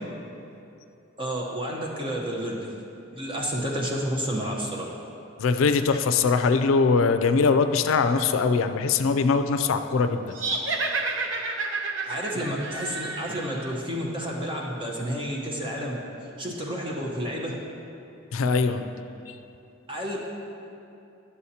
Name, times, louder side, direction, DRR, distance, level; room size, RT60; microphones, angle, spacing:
voice 1, 1.2-2.7 3.1-4.9 12.0-16.0 16.4-17.5 19.9-20.2, equal, 25° right, -1 dB, 0.9 m, -30 dB
voice 2, 5.4-10.3 18.3-18.8 19.3-19.4, left 4 dB, 80° left, 9 dB, 0.4 m, -22 dB
sound 1, 10.3-13.7, right 3 dB, 70° right, 0.7 m, -30 dB
11.0 x 7.1 x 2.8 m, 2.7 s
head